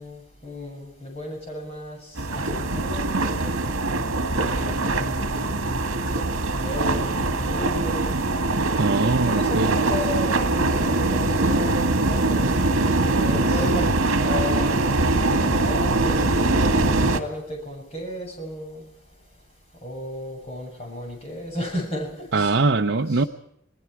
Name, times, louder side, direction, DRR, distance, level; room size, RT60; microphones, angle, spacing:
voice 1, 0.0-3.5 4.3-5.9 6.5-8.1 9.1-12.6 13.1-15.0 15.5-16.8 17.1-18.8 19.8-22.6 23.1-23.3, left 1 dB, 30° left, 0 dB, 7.2 m, -34 dB
sound 1, 2.2-17.2, right 2 dB, 75° right, 2.0 m, -22 dB
voice 2, 8.8-9.7 22.3-23.2, right 3 dB, 55° right, 4 dB, 0.7 m, -22 dB
28.5 x 19.0 x 4.7 m, 0.73 s
head